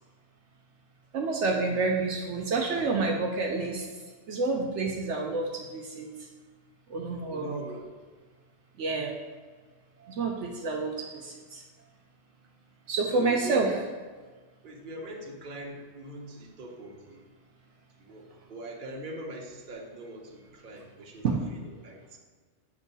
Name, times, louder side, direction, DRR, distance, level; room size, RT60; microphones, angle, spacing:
voice 1, 1.1-3.9 4.3-6.1 6.9-7.6 8.8-9.2 10.0-11.6 12.9-13.7 21.2-21.4, right 3 dB, 70° right, 0 dB, 0.9 m, -29 dB
voice 2, 7.3-7.9 13.1-13.8 14.6-17.2 18.0-21.4 21.6-22.2, right 2 dB, 45° right, -1 dB, 0.9 m, -41 dB
7.8 x 2.7 x 5.3 m, 1.5 s
omnidirectional pair, 1.3 m